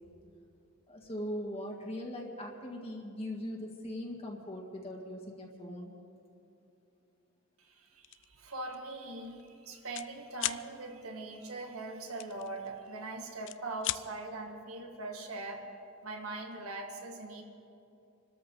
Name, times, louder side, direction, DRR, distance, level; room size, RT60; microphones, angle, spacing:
voice 1, 0.9-5.9, left 1 dB, 30° left, 0 dB, 1.8 m, -40 dB
voice 2, 7.6-15.7 16.0-17.4, right 2 dB, 80° right, 3 dB, 2.0 m, -41 dB
sound 1, 8.0-8.3 8.7-8.9 9.2-10.1 10.4-10.6 12.2-13.0 13.3-14.0, left 15 dB, 60° left, 0.4 m, -36 dB
27.0 x 13.5 x 3.9 m, 2.7 s
head